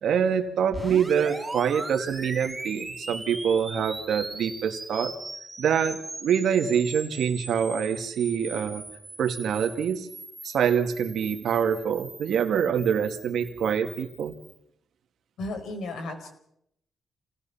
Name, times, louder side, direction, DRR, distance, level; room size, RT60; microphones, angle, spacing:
voice 1, 0.0-5.1 5.6-8.8 9.2-10.1 10.4-14.3, right 7 dB, 75° right, 5 dB, 2.3 m, -25 dB
sound 1, 0.7-14.6, right 2 dB, 10° right, 4.3 m, -40 dB
voice 2, 15.4-16.3, left 2 dB, 80° left, 7 dB, 4.6 m, -34 dB
27.5 x 18.5 x 5.8 m, 0.75 s
cardioid pair, 115°, 0 cm